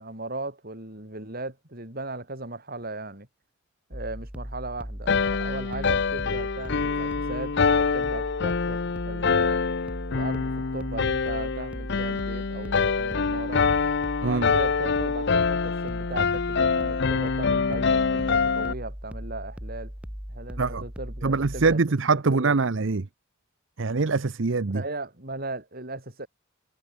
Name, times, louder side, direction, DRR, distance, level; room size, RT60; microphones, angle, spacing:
voice 1, 0.0-3.3 3.9-9.6 10.1-13.7 14.2-19.9 20.3-21.8 22.2-22.6 24.6-26.3, right 2 dB, 45° right, 5.0 m, -37 dB
sound 1, 3.9-21.8, equal, 5° right, 1.0 m, -38 dB
sound 2, 5.1-18.7, left 5 dB, 55° left, 0.6 m, -25 dB
voice 2, 21.2-23.1 23.8-24.8, right 4 dB, 65° right, 0.7 m, -23 dB
head